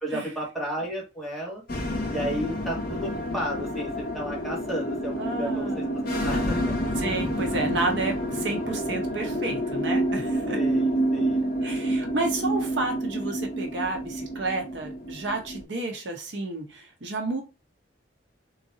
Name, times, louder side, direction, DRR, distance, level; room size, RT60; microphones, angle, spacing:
voice 1, 0.0-1.6 2.1-6.7 10.5-11.4, equal, ahead, -4 dB, 1.4 m, -33 dB
sound 1, 1.7-15.6, right 1 dB, 55° left, 0.8 m, -28 dB
voice 2, 5.2-6.3 7.0-10.6 11.6-17.4, right 2 dB, 85° right, 2 dB, 1.0 m, -31 dB
3.9 x 2.6 x 2.6 m, 0.28 s
head